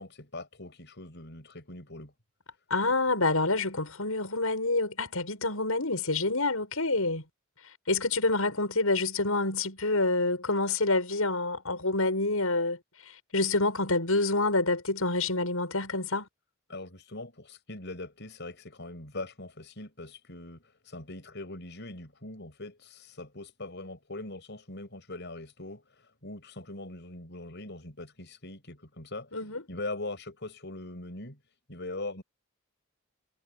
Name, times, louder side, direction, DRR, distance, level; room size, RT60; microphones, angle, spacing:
voice 1, 0.0-2.1 16.7-31.4 31.7-32.2, left 2 dB, 55° left, 7.8 m, -41 dB
voice 2, 2.7-7.2 7.9-12.8 13.1-16.3 29.3-29.6, left 2 dB, 85° left, 7.2 m, -27 dB
head